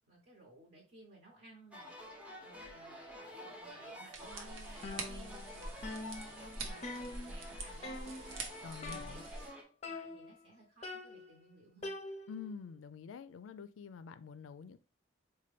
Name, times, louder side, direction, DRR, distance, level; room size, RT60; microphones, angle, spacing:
voice 1, 0.1-12.0, right 2 dB, 50° right, 0.9 m, -59 dB
sound 1, 1.7-9.6, equal, 5° right, 0.6 m, -50 dB
sound 2, 4.1-9.5, right 2 dB, 90° right, 0.7 m, -45 dB
sound 3, 4.8-5.5 5.8-7.5 7.8-8.4 8.8-9.5 9.8-10.5 10.8-12.5, left 2 dB, 35° left, 0.5 m, -45 dB
voice 2, 8.6-9.2 12.3-14.8, left 6 dB, 90° left, 0.3 m, -47 dB
4.3 x 2.2 x 3.1 m
head